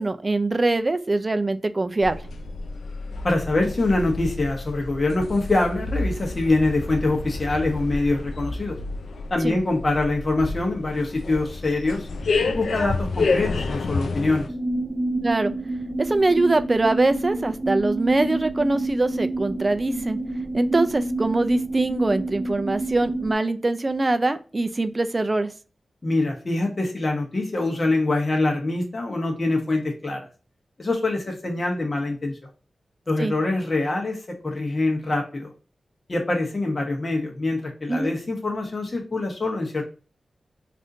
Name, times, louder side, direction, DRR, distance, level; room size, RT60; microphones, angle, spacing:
voice 1, 0.0-2.2 9.4-9.5 15.2-15.5 16.0-20.2 20.5-25.5 33.2-33.3 37.9-38.1, right 2 dB, 35° right, 10 dB, 0.4 m, -23 dB
sound 1, 2.0-14.5, left 3 dB, 85° left, 0.4 m, -29 dB
voice 2, 3.2-8.8 9.3-12.1 12.5-14.5 26.0-30.3 30.8-32.3 33.1-34.2 34.4-35.5 36.1-39.8, left 2 dB, 45° left, 1 dB, 0.9 m, -24 dB
sound 2, 14.5-23.3, right 2 dB, 15° right, 0.8 m, -28 dB
3.5 x 2.5 x 2.6 m, 0.36 s
cardioid pair, 50°, 0 cm